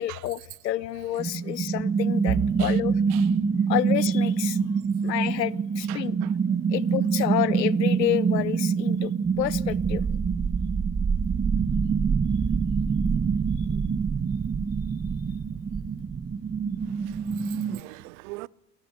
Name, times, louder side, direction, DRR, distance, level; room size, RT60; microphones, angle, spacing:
voice 1, 0.0-3.0 3.7-4.6 5.0-6.2 6.7-10.0 13.7-13.8, left 13 dB, 85° left, 0.8 m, -29 dB
sound 1, 1.2-17.8, right 5 dB, 15° right, 0.7 m, -25 dB
sound 2, 2.3-14.1 14.5-14.8 15.2-15.3 16.2-16.7, right 8 dB, 45° right, 2.4 m, -42 dB
voice 2, 5.9-6.3 16.8-18.5, right 24 dB, 60° right, 0.8 m, -42 dB
28.5 x 11.5 x 9.4 m
figure-of-eight pair, 70°, 49 cm